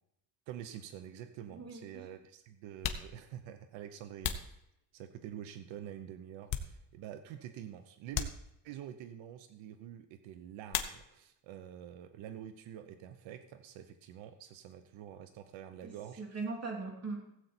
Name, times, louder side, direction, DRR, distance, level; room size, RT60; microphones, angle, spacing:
voice 1, 0.5-4.6 4.9-8.3 8.6-16.2, right 10 dB, 90° right, 9 dB, 0.9 m, -47 dB
sound 1, 0.9-1.0 2.0-2.1 2.7-5.3 5.8-7.2 7.5-7.6 8.1-8.9 10.7-11.5 11.7-12.4 12.7-14.9, left 9 dB, 50° left, 1.1 m, -41 dB
voice 2, 1.5-2.1 15.8-17.3, right 3 dB, 35° right, 1 dB, 3.0 m, -41 dB
16.0 x 8.1 x 4.4 m, 0.79 s
cardioid pair, 135°, 45 cm